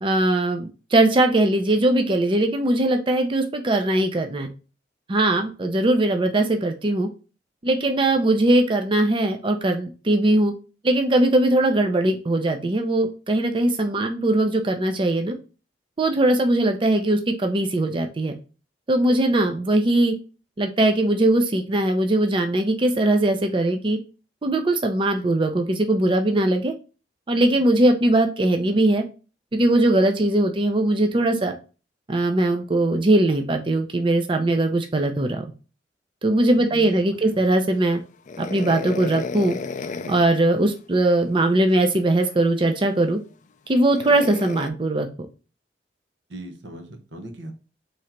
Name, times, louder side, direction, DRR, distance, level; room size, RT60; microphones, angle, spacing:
voice 1, 0.0-4.5 5.1-7.1 7.6-10.5 10.8-15.4 16.0-18.3 18.9-20.1 20.6-24.0 24.4-26.7 27.3-29.0 29.5-31.5 32.1-35.5 36.2-38.0 38.4-39.6 40.1-43.2 43.7-45.1, right 1 dB, 30° right, 5 dB, 0.5 m, -20 dB
voice 2, 36.6-37.4 46.3-47.5, right 1 dB, 85° right, 5 dB, 1.0 m, -39 dB
sound 1, 38.3-40.3 42.2-42.3 43.9-44.7, left 4 dB, 45° left, 0.4 m, -33 dB
3.7 x 3.2 x 4.4 m, 0.33 s
head